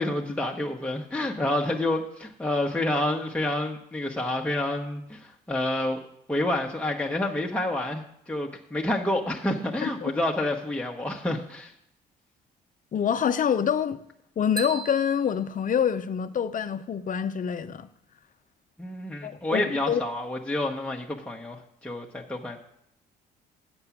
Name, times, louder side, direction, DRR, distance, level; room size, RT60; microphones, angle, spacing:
voice 1, 0.0-6.0 6.3-11.7 18.8-22.6, left 1 dB, 5° left, 1.2 m, -28 dB
voice 2, 12.9-14.0 14.4-17.9 19.2-20.0, left 8 dB, 40° left, 0.7 m, -26 dB
sound 1, 14.6-16.5, right 6 dB, 20° right, 1.3 m, -40 dB
7.8 x 6.1 x 7.2 m
hypercardioid pair, 60°, 20 cm